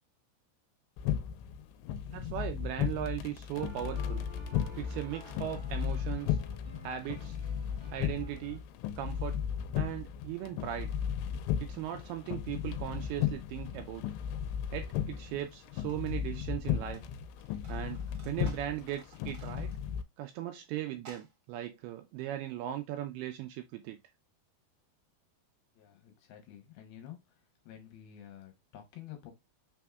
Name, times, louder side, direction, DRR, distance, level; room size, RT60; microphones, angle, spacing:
sound 1, 1.0-20.0, left 9 dB, 90° left, 2.7 m, -35 dB
voice 1, 2.1-4.2 4.8-6.4 6.8-7.4 7.9-8.6 9.0-9.4 9.8-10.9 11.6-14.0 14.7-17.0 17.7-19.7 20.2-24.0, right 12 dB, 85° right, 2.3 m, -38 dB
sound 2, 3.5-8.6, left 2 dB, 35° right, 1.1 m, -49 dB
sound 3, 15.0-15.1 15.6-17.1 17.3-20.0 20.3-20.4 21.0-21.3, right 3 dB, 65° right, 1.6 m, -56 dB
voice 2, 25.8-27.4 27.7-29.3, left 11 dB, 75° left, 2.5 m, -50 dB
5.9 x 3.5 x 2.2 m
omnidirectional pair, 4.8 m